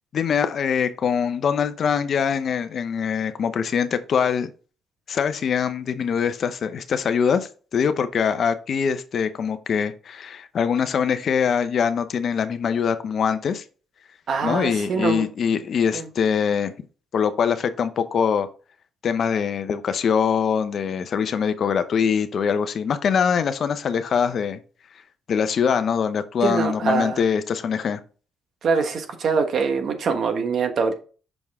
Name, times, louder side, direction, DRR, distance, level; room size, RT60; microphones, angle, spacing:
voice 1, 0.1-4.5 5.1-13.6 14.4-16.7 17.1-18.5 19.0-24.6 25.3-28.0, left 7 dB, 55° left, 0.7 m, -23 dB
voice 2, 14.3-15.3 15.9-16.1 26.4-27.2 28.6-30.9, right 5 dB, 60° right, 1.2 m, -23 dB
6.2 x 5.3 x 3.5 m
cardioid pair, 90°, 0 cm